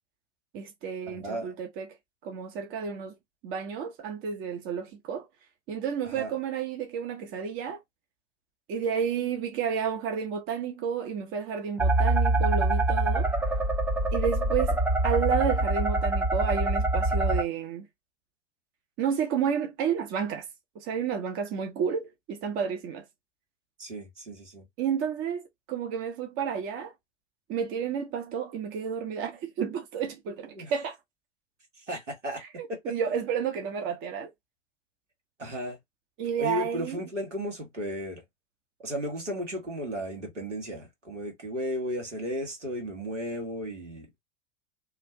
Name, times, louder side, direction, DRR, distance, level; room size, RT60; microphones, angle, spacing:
voice 1, 0.5-2.0 2.2-3.2 3.4-5.3 5.7-7.8 8.7-13.3 14.1-17.9 19.0-20.5 20.7-23.0 24.8-26.9 27.5-31.0 32.4-34.3 36.2-37.0, right 7 dB, 35° right, 0.9 m, -31 dB
voice 2, 1.1-1.6 6.0-6.3 23.8-24.7 30.6-30.7 31.8-32.4 32.7-32.9 35.4-35.8 36.4-38.2 38.8-44.2, equal, 85° right, 1.7 m, -34 dB
sound 1, 11.8-17.4, right 2 dB, 5° right, 0.4 m, -25 dB
3.1 x 2.5 x 2.8 m
figure-of-eight pair, 90°, 35 cm